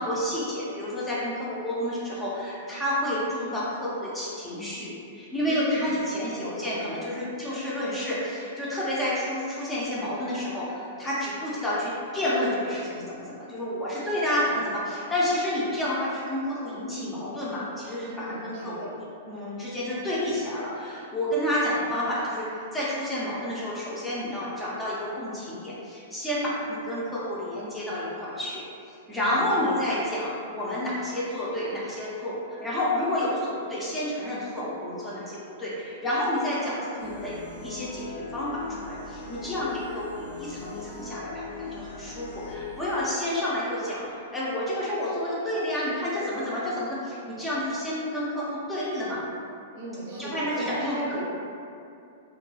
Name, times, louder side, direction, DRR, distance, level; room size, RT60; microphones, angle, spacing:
voice 1, 0.0-18.9 19.3-28.6 29.1-49.2 50.2-51.2, left 1 dB, 10° left, -8 dB, 0.5 m, -30 dB
voice 2, 5.4-6.0 6.4-6.8 18.1-18.9 29.2-29.8 49.7-51.2, right 2 dB, 55° right, -4 dB, 0.6 m, -36 dB
sound 1, 37.0-43.0, left 3 dB, 55° left, 0.5 m, -40 dB
2.2 x 2.2 x 3.1 m, 2.6 s
hypercardioid pair, 145°, 0 cm